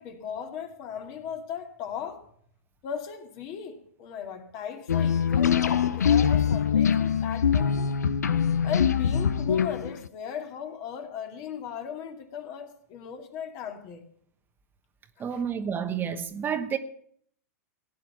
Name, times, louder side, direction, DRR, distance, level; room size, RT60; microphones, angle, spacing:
voice 1, 0.0-2.3 2.8-7.9 8.6-14.1 15.2-15.4, left 8 dB, 45° left, 2.4 m, -37 dB
sound 1, 4.9-10.1, left 7 dB, 90° left, 0.6 m, -23 dB
voice 2, 15.2-16.8, right 7 dB, 25° right, 1.0 m, -30 dB
16.5 x 9.1 x 7.0 m
hypercardioid pair, 115°, 9 cm